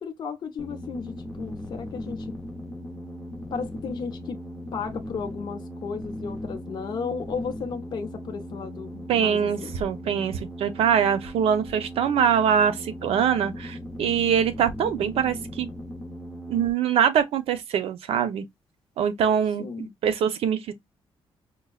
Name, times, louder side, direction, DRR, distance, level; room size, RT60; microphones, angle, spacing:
voice 1, 0.0-2.3 3.5-4.4 4.7-9.7 19.6-19.9, left 5 dB, 45° left, 0.6 m, -34 dB
sound 1, 0.6-16.7, equal, 5° left, 0.7 m, -38 dB
voice 2, 9.1-15.7 16.5-18.4 19.0-20.7, right 8 dB, 85° right, 0.6 m, -23 dB
5.3 x 2.1 x 2.3 m
cardioid pair, 150°, 10 cm